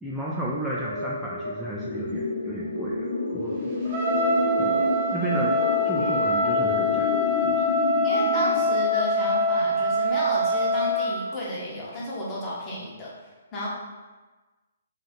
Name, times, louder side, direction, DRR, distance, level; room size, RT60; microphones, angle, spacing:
voice 1, 0.0-3.7 4.6-4.8 5.1-5.6 5.8-7.7, right 1 dB, 5° right, -7 dB, 0.3 m, -33 dB
sound 1, 0.7-8.7, left 2 dB, 70° left, 0.6 m, -29 dB
Trumpet, 3.9-11.2, left 1 dB, 30° right, 0.8 m, -24 dB
voice 2, 8.0-13.1 13.5-13.7, left 1 dB, 25° left, -6 dB, 0.9 m, -32 dB
2.5 x 2.4 x 3.5 m, 1.2 s
figure-of-eight pair, 130°, 0 cm